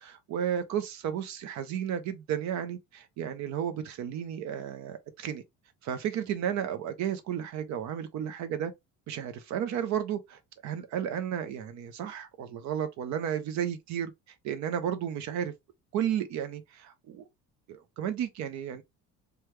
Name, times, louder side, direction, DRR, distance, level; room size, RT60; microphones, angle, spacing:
voice 1, 0.0-5.4 5.8-8.7 9.1-14.1 14.4-15.5 15.9-17.2 17.7-18.8, right 9 dB, 55° right, 0.6 m, -33 dB
3.2 x 2.3 x 3.1 m
cardioid pair, 160°, 34 cm